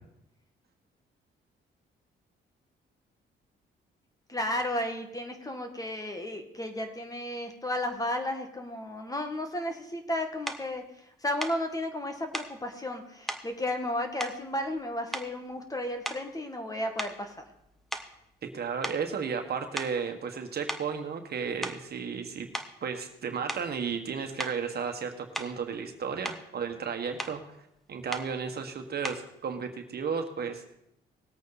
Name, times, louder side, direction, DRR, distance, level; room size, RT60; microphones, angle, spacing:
voice 1, 4.3-17.4, left 1 dB, 20° left, 5 dB, 1.9 m, -33 dB
sound 1, 10.5-10.7 11.4-11.6 12.3-12.6 13.3-13.5 14.2-14.8 15.1-15.5 16.0-16.4 17.0-18.5 18.8-19.1 19.8-20.0 20.7-20.9 21.4-21.9 22.5-22.8 23.5-23.7 24.4-24.6 25.3-25.6 26.0-26.5 27.2-27.4 28.1-28.3 29.0-29.3, equal, ahead, 1.2 m, -37 dB
voice 2, 18.4-22.5 22.8-27.4 27.9-30.6, right 6 dB, 55° right, 5 dB, 1.6 m, -33 dB
19.5 x 8.4 x 4.2 m, 0.81 s
cardioid pair, 90°, 20 cm